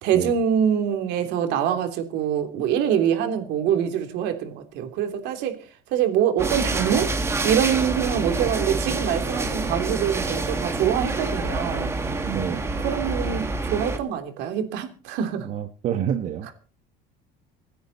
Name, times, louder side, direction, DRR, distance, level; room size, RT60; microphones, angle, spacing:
voice 1, 0.0-5.5 5.9-7.1 7.4-11.9 12.8-15.5, right 9 dB, 60° right, 3.2 m, -24 dB
sound 1, 6.4-14.0, right 3 dB, 15° right, 1.7 m, -27 dB
voice 2, 12.2-12.7 15.4-16.5, right 9 dB, 35° right, 1.1 m, -28 dB
26.5 x 10.0 x 4.2 m
cardioid pair, 175°, 20 cm